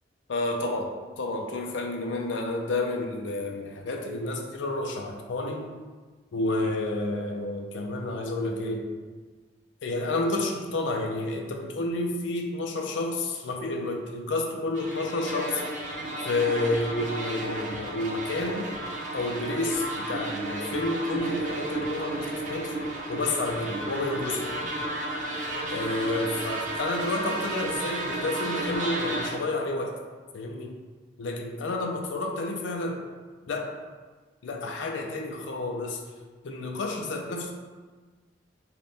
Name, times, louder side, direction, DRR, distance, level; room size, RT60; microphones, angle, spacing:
voice 1, 0.3-5.7 6.3-8.9 9.8-15.6 16.3-18.7 19.1-22.8 23.1-24.6 25.7-30.0 30.3-30.8 31.2-33.0 33.5-33.7 34.4-36.0 36.4-37.5, left 2 dB, 80° left, 2 dB, 0.4 m, -30 dB
sound 1, 14.7-29.3, right 2 dB, 40° right, 0.6 m, -33 dB
3.5 x 2.2 x 3.9 m, 1.4 s
head